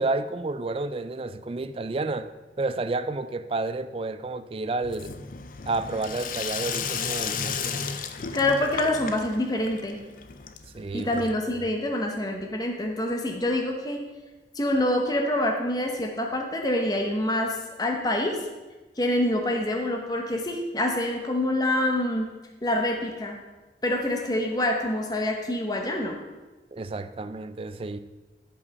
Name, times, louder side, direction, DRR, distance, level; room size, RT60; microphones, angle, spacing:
voice 1, 0.0-2.3 2.6-5.1 5.7-7.9 10.7-11.6 26.7-28.0, right 3 dB, 30° right, 0.4 m, -30 dB
Sink (filling or washing), 4.8-11.6, left 6 dB, 50° left, 0.5 m, -34 dB
voice 2, 8.3-10.0 10.9-14.0 14.5-18.4 19.0-22.3 22.6-23.4 23.8-26.1, left 1 dB, 20° left, 0.9 m, -26 dB
11.0 x 5.4 x 5.3 m
head